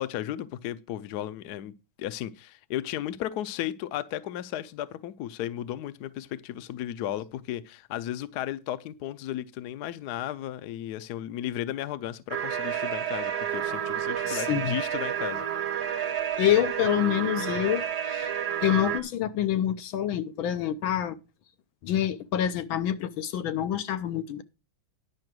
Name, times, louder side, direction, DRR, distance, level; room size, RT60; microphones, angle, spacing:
voice 1, 0.0-1.7 2.0-15.4, left 12 dB, 65° left, 1.1 m, -34 dB
sound 1, 12.3-19.0, right 9 dB, 60° right, 1.4 m, -30 dB
voice 2, 14.3-14.8 16.4-18.3 18.6-21.2 21.8-24.4, left 11 dB, 85° left, 1.6 m, -27 dB
10.5 x 5.7 x 6.1 m
omnidirectional pair, 2.2 m